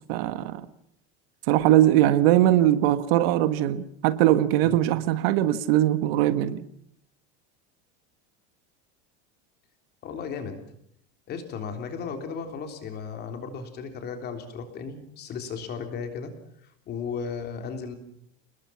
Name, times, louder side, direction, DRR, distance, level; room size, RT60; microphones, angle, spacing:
voice 1, 0.1-0.6 1.5-6.6, right 13 dB, 65° right, 1.6 m, -21 dB
voice 2, 10.0-10.6 11.3-16.3 16.9-17.9, left 6 dB, 30° left, 3.6 m, -35 dB
28.5 x 20.5 x 5.9 m
cardioid pair, 170°, 32 cm